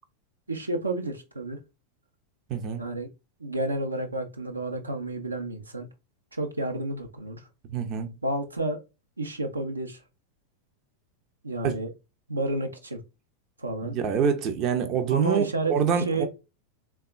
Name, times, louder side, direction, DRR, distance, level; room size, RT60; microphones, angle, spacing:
voice 1, 0.5-1.6 2.8-3.1 3.4-5.9 6.3-7.5 8.2-8.8 9.2-10.0 11.4-11.9 12.3-13.0 13.6-14.0 15.1-15.7 16.1-16.3, right 2 dB, 80° right, 0.6 m, -30 dB
voice 2, 2.5-2.9 7.7-8.1 11.6-11.8 13.8-16.3, right 7 dB, 35° right, 0.6 m, -26 dB
3.5 x 2.3 x 2.3 m
figure-of-eight pair, 90°, 0 cm